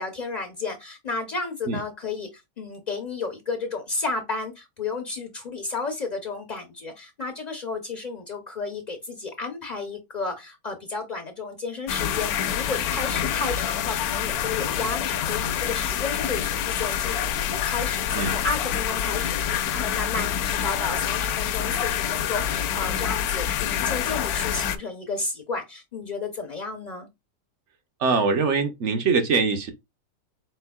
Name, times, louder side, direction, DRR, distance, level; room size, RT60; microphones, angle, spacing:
voice 1, 0.0-2.3 2.6-27.1, left 4 dB, 55° left, 0.4 m, -32 dB
sound 1, 11.9-24.8, left 9 dB, 70° left, 1.0 m, -26 dB
voice 2, 28.0-29.7, right 4 dB, 60° right, 0.8 m, -23 dB
4.4 x 4.1 x 2.2 m
omnidirectional pair, 1.8 m